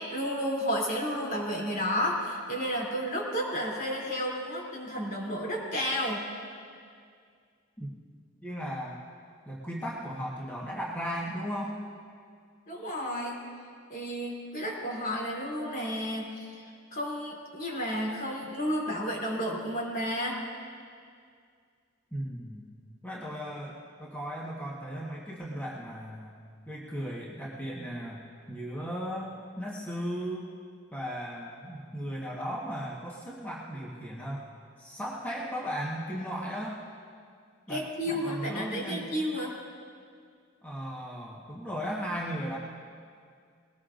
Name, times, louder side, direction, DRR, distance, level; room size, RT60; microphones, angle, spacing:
voice 1, 0.0-6.3 12.7-13.4 13.9-16.5 16.9-20.4 37.7-39.5, equal, 45° left, -3 dB, 3.1 m, -32 dB
voice 2, 8.4-9.0 9.4-11.8 22.1-22.6 23.0-26.3 26.7-30.5 30.9-34.4 34.8-36.8 37.7-39.1 40.6-42.6, equal, 10° left, -5 dB, 1.3 m, -36 dB
20.0 x 18.5 x 2.6 m, 2.2 s
head